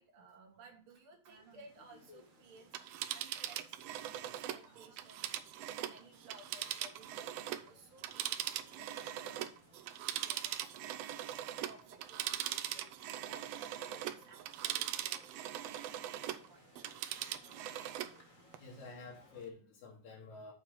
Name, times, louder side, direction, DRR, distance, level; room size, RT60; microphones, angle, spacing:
voice 1, 0.0-2.7 3.1-5.5 5.9-11.3 11.6-12.8 13.2-16.9, right 3 dB, 50° right, 2 dB, 2.3 m, -59 dB
sound 1, 1.3-19.5, left 2 dB, 35° left, 1.6 m, -64 dB
Telephone, 2.6-7.7 8.0-16.5 16.8-18.2 18.5-18.6, right 12 dB, 80° right, 1.5 m, -41 dB
voice 2, 18.6-20.5, left 4 dB, 75° left, -3 dB, 3.0 m, -50 dB
7.2 x 4.6 x 6.4 m, 0.41 s
omnidirectional pair, 3.4 m